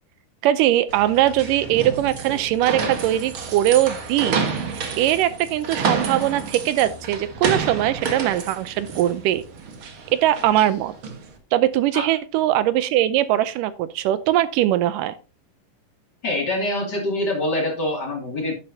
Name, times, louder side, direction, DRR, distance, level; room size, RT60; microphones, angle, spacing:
voice 1, 0.4-4.4 4.7-9.4 10.1-10.9 11.5-15.1, right 13 dB, 80° right, 14 dB, 2.1 m, -21 dB
sound 1, 0.9-11.3, right 5 dB, 50° right, 1.7 m, -29 dB
voice 2, 16.2-18.5, left 1 dB, 35° left, 0 dB, 2.7 m, -25 dB
10.5 x 10.0 x 2.7 m, 0.31 s
omnidirectional pair, 3.9 m